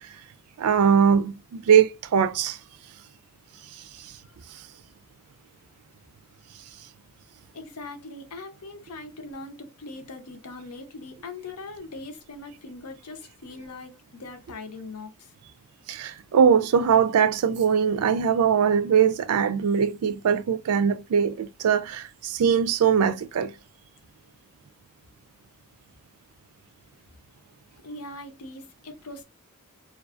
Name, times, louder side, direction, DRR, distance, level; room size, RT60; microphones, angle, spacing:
voice 1, 0.6-2.6 15.9-23.5, right 7 dB, 85° right, 0.4 m, -21 dB
voice 2, 7.5-15.3 27.8-29.2, left 3 dB, 90° left, 0.7 m, -41 dB
2.5 x 2.4 x 2.3 m
head